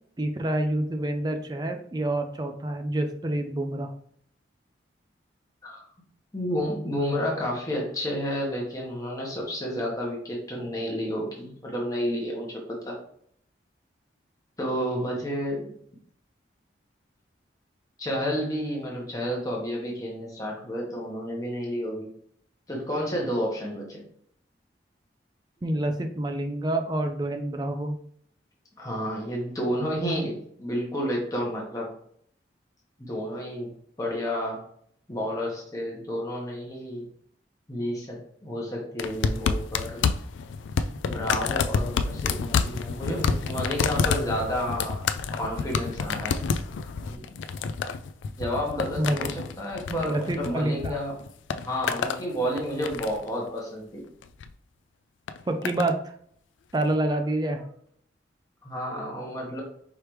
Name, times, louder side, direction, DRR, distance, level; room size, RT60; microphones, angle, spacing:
voice 1, 0.2-3.9 25.6-28.0 49.0-49.4 49.9-51.0 55.5-56.0 56.7-57.6, right 1 dB, 20° right, 5 dB, 0.4 m, -27 dB
voice 2, 6.3-13.0 14.6-15.7 18.0-22.1 22.7-24.0 28.8-31.9 33.0-33.7 34.0-34.6 35.1-37.1 37.7-40.0 41.0-45.0 45.3-46.4 47.1-47.4 48.4-51.2 51.6-54.1 58.6-59.6, equal, 20° left, -2 dB, 1.0 m, -31 dB
sound 1, 39.0-50.9 51.2-52.2 52.6-53.3 54.2-54.5 55.3-55.9 56.8-56.9, left 5 dB, 90° left, 0.3 m, -28 dB
4.8 x 3.2 x 3.0 m, 0.65 s
head